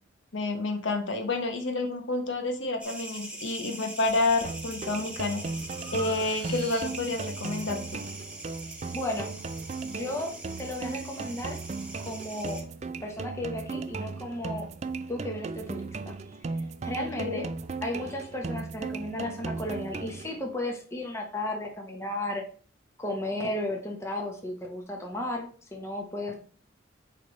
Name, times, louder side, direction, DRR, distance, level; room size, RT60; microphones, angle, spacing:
voice 1, 0.3-5.4 5.9-8.0 17.0-17.5, left 2 dB, 70° left, 5 dB, 1.1 m, -29 dB
sound 1, 2.8-12.6, right 2 dB, 5° right, 1.1 m, -42 dB
Breathing, 4.0-4.5 5.0-7.2, equal, 30° left, 3.5 m, -45 dB
sound 2, 4.4-20.4, right 4 dB, 35° right, 0.3 m, -37 dB
voice 2, 8.9-9.3 9.8-11.6 12.0-12.6 13.0-14.7 15.1-16.2 16.8-17.5 17.8-22.4 23.0-26.3, left 1 dB, 15° left, 1 dB, 1.0 m, -34 dB
8.3 x 3.3 x 4.0 m, 0.43 s
head